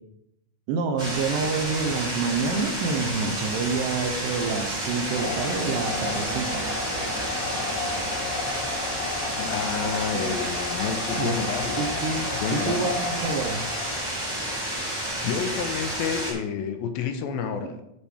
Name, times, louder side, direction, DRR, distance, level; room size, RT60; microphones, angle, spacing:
voice 1, 0.7-6.6 10.1-10.4 11.1-11.4 11.8-12.2 12.5-13.6, right 4 dB, 75° right, 5 dB, 2.2 m, -28 dB
sound 1, 1.0-16.3, right 1 dB, 15° right, 1.0 m, -31 dB
Squeak, 3.9-8.5, right 4 dB, 55° right, 2.0 m, -40 dB
sound 2, 5.1-14.1, left 4 dB, 65° left, 2.1 m, -33 dB
voice 2, 9.4-11.8 12.4-13.0 15.2-17.8, left 6 dB, 80° left, 7 dB, 2.4 m, -29 dB
12.5 x 4.4 x 3.5 m, 0.82 s
omnidirectional pair, 4.2 m